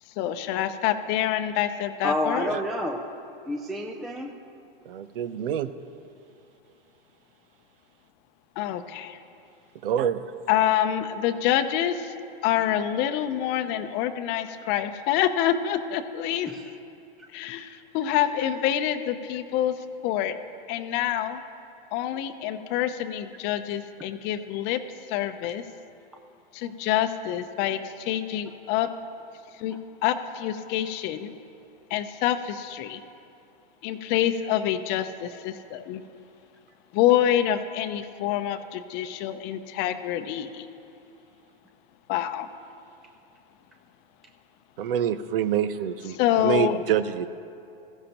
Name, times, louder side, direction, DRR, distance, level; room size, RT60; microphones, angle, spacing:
voice 1, 0.2-2.5 8.6-9.2 10.5-12.1 12.4-16.5 17.3-19.7 20.0-20.4 20.7-21.4 21.9-24.8 25.1-25.6 26.5-28.9 29.6-31.3 31.9-33.0 33.8-36.0 36.9-40.7 42.1-42.5 46.1-46.8, left 11 dB, 35° left, 9 dB, 0.7 m, -26 dB
voice 2, 2.0-3.0 3.5-4.3 16.5-16.6 26.6-26.7, left 1 dB, ahead, 2 dB, 0.3 m, -29 dB
voice 3, 4.9-5.7 9.8-10.2 44.8-47.3, right 9 dB, 70° right, 13 dB, 0.7 m, -26 dB
16.5 x 14.5 x 3.0 m, 2.7 s
hypercardioid pair, 130°, 29 cm